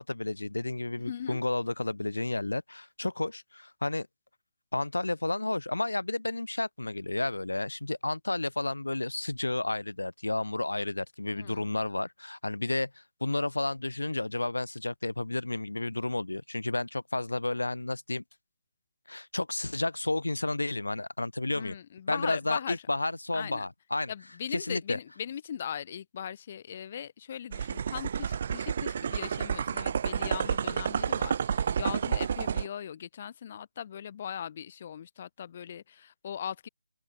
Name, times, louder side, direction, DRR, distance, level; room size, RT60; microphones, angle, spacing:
voice 1, 0.0-4.1 4.7-18.2 19.1-21.8 22.1-24.1 24.5-25.0, left 2 dB, 85° left, 4.6 m, -31 dB
voice 2, 1.0-1.4 11.3-11.7 21.5-22.8 23.3-23.7 24.1-36.7, left 9 dB, 35° left, 2.0 m, -39 dB
sound 1, 27.5-32.7, right 7 dB, 40° right, 2.0 m, -30 dB
open air
figure-of-eight pair, 155°, 0 cm